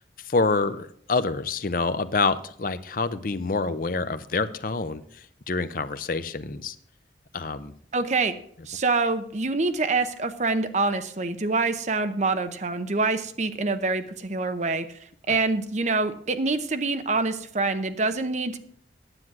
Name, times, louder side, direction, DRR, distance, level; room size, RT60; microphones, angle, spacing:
voice 1, 0.2-6.8 7.3-7.7 15.3-15.4, left 3 dB, 50° left, 13 dB, 0.6 m, -27 dB
voice 2, 7.9-8.4 8.7-14.9 15.3-18.6, right 3 dB, 40° right, 10 dB, 0.7 m, -25 dB
9.8 x 7.8 x 6.0 m, 0.63 s
head